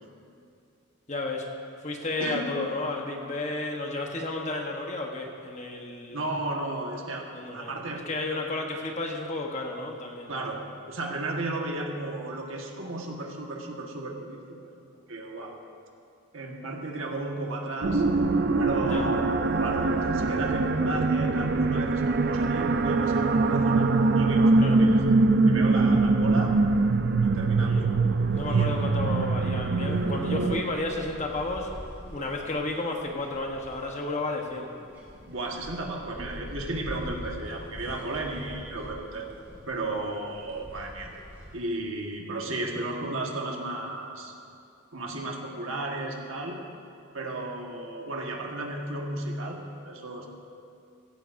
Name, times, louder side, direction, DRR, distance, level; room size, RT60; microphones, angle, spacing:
voice 1, 1.1-1.5 1.8-6.3 7.3-7.7 8.1-10.3 18.8-19.1 24.6-24.8 27.6-34.7, left 2 dB, 35° left, 1 dB, 1.1 m, -32 dB
voice 2, 6.1-8.0 8.3-8.5 10.3-15.6 16.3-18.0 18.6-26.6 27.2-27.9 28.5-28.7 35.3-39.3 39.7-41.1 41.5-44.3 44.9-46.6 47.1-50.3, right 2 dB, 65° right, 0 dB, 1.5 m, -34 dB
sound 1, 17.8-30.6, right 3 dB, 50° right, 0.5 m, -23 dB
sound 2, 28.3-41.5, equal, 10° right, 2.7 m, -45 dB
16.5 x 15.0 x 2.6 m, 2.5 s
head